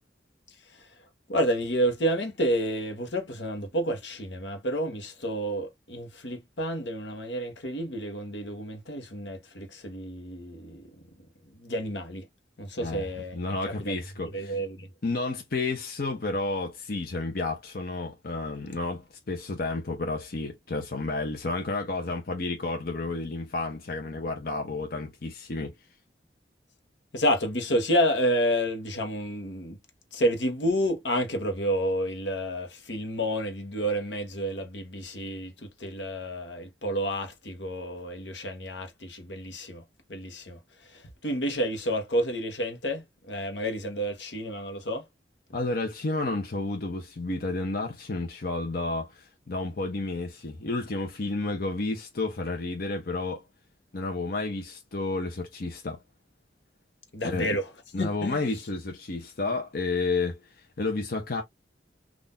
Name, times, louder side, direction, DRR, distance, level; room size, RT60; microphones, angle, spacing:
voice 1, 1.3-10.8 11.6-12.3 12.6-13.9 14.3-14.9 27.1-29.8 30.1-39.8 40.1-40.6 40.9-45.0 57.1-57.7 58.0-58.4, equal, 80° left, 1.0 m, -30 dB
voice 2, 12.8-14.6 15.0-25.7 45.5-53.5 53.9-56.0 57.2-57.6 57.9-61.4, left 3 dB, 55° left, 0.8 m, -31 dB
3.8 x 2.5 x 2.5 m
head